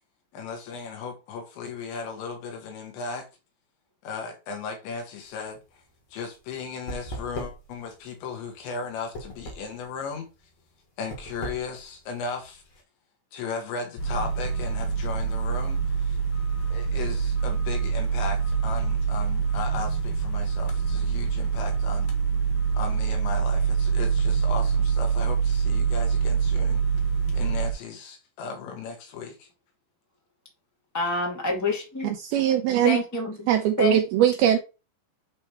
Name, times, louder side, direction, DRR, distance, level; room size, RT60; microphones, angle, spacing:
voice 1, 0.3-3.3 4.0-5.8 6.1-10.3 11.0-12.6 13.3-16.2 16.7-22.1 22.7-26.8 27.3-29.5, left 5 dB, 85° left, 3.9 m, -36 dB
sound 1, 5.3-12.8, equal, 45° left, 2.5 m, -40 dB
sound 2, 14.0-27.7, right 6 dB, 65° left, 2.8 m, -25 dB
voice 2, 30.9-32.1 32.8-33.5 33.8-34.0, left 2 dB, 10° left, 0.8 m, -27 dB
voice 3, 32.0-33.0 33.5-34.6, right 10 dB, 85° right, 2.2 m, -21 dB
8.2 x 3.5 x 4.5 m
omnidirectional pair, 5.0 m